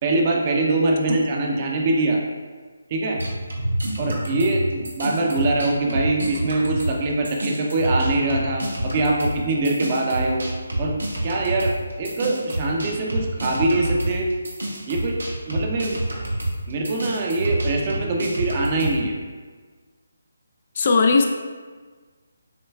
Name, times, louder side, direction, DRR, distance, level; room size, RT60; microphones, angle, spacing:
voice 1, 0.0-2.2 2.9-3.2 4.0-10.5 10.8-10.9 11.2-14.3 14.9-15.2 15.5-16.0 16.7-19.1, right 2 dB, 30° right, -1 dB, 0.5 m, -23 dB
sound 1, 3.2-7.0 7.2-19.0, right 1 dB, 80° right, 0.8 m, -28 dB
voice 2, 20.7-21.3, left 4 dB, 45° left, 3 dB, 0.3 m, -17 dB
6.4 x 2.2 x 2.3 m, 1.5 s
figure-of-eight pair, 150°, 0 cm